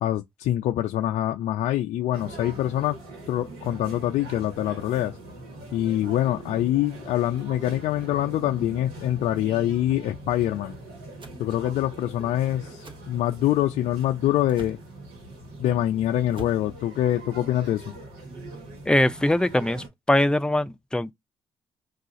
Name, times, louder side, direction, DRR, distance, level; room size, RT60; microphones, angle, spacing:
voice 1, 0.0-3.0 3.3-5.2 5.7-10.7 11.4-14.8 15.6-17.9, left 13 dB, 75° left, 0.4 m, -25 dB
sound 1, 2.1-19.9, right 2 dB, 90° right, 1.1 m, -42 dB
sound 2, 11.2-11.4 12.8-13.0 14.5-14.8 16.3-16.7, right 4 dB, 50° right, 0.9 m, -43 dB
voice 2, 18.9-21.1, left 1 dB, 5° left, 0.5 m, -22 dB
2.4 x 2.3 x 4.0 m
supercardioid pair, 50°, 12 cm